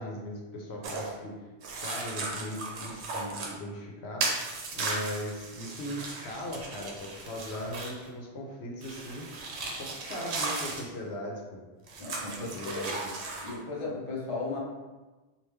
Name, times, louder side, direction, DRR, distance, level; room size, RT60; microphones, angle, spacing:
voice 1, 0.0-1.3 1.8-11.6 12.5-12.9, left 1 dB, 80° left, -1 dB, 0.9 m, -39 dB
sound 1, 0.8-1.1 1.6-3.5 4.2-8.1 8.8-10.9 11.9-13.5, right 3 dB, 90° right, 0.9 m, -36 dB
voice 2, 12.0-13.1 13.4-14.6, left 3 dB, 35° left, -4 dB, 0.6 m, -36 dB
3.2 x 2.5 x 3.2 m, 1.2 s
omnidirectional pair, 1.1 m